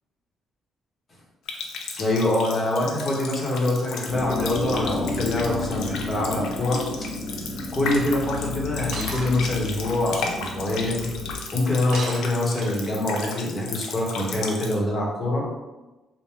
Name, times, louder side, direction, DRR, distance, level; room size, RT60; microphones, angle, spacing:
Water tap faucet, 1.5-14.8, left 4 dB, 85° left, 0.5 m, -35 dB
voice 1, 1.9-6.8 7.7-11.1 11.5-15.4, left 1 dB, 25° left, -3 dB, 0.9 m, -25 dB
sound 1, 4.1-11.3, left 2 dB, 30° right, 1.5 m, -32 dB
Shatter, 8.9-9.5 11.9-13.0, right 2 dB, 65° right, 0.8 m, -34 dB
3.4 x 2.1 x 4.3 m, 1.1 s
cardioid pair, 145°, 0 cm